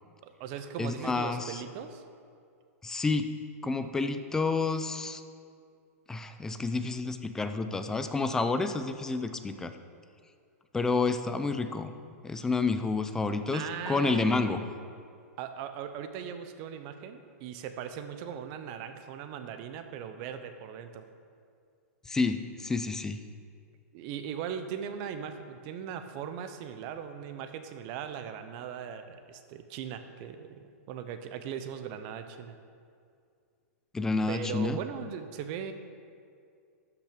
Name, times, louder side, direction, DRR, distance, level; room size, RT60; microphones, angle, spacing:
voice 1, 0.2-2.0 13.5-14.5 15.4-21.1 23.9-32.5 34.3-35.7, right 8 dB, 35° right, 9 dB, 0.7 m, -39 dB
voice 2, 0.8-1.6 2.8-3.3 3.6-5.2 6.1-9.7 10.7-11.9 12.2-14.6 22.1-23.2 33.9-34.8, left 3 dB, 5° left, 9 dB, 0.3 m, -29 dB
12.5 x 5.8 x 5.1 m, 2.3 s
hypercardioid pair, 160°, 8 cm